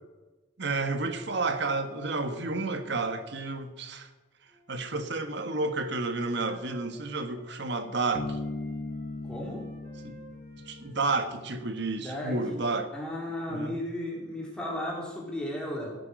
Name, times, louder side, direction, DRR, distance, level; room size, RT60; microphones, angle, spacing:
voice 1, 0.6-4.1 4.7-8.4 10.0-10.2 10.7-12.9 13.5-13.8, right 3 dB, 65° right, 8 dB, 1.5 m, -31 dB
Wind instrument woodwind instrument, 4.5-8.1 8.4-12.2, right 2 dB, 45° right, 5.1 m, -55 dB
Bass guitar, 8.2-11.7, left 2 dB, 45° left, 1.1 m, -38 dB
voice 2, 9.2-9.6 12.0-12.6 12.9-15.9, left 1 dB, 5° left, -3 dB, 3.8 m, -35 dB
15.5 x 9.5 x 6.4 m, 1.2 s
head